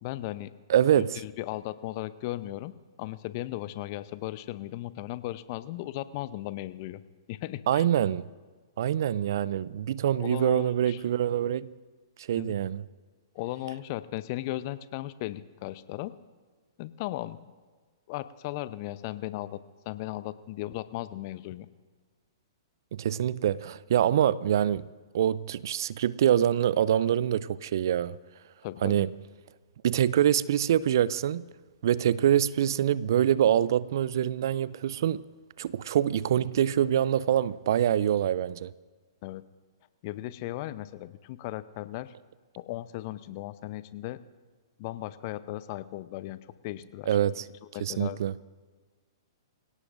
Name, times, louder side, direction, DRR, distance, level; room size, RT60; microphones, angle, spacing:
voice 1, 0.0-0.5 1.0-2.7 3.0-7.0 7.3-7.9 10.2-11.0 12.3-12.5 13.3-16.1 16.8-17.4 18.1-19.6 19.9-21.7 28.6-29.0 39.2-39.4 40.0-42.1 42.6-44.2 44.8-47.2 47.7-48.2, left 16 dB, 45° left, 0.7 m, -36 dB
voice 2, 0.7-1.2 7.7-8.3 8.8-11.7 12.2-12.8 22.9-24.9 25.1-28.2 28.8-29.1 29.8-31.4 31.8-35.2 35.6-38.7 47.1-47.4 47.8-48.3, right 10 dB, 60° right, 0.4 m, -25 dB
25.0 x 17.0 x 2.6 m
figure-of-eight pair, 115°, 2 cm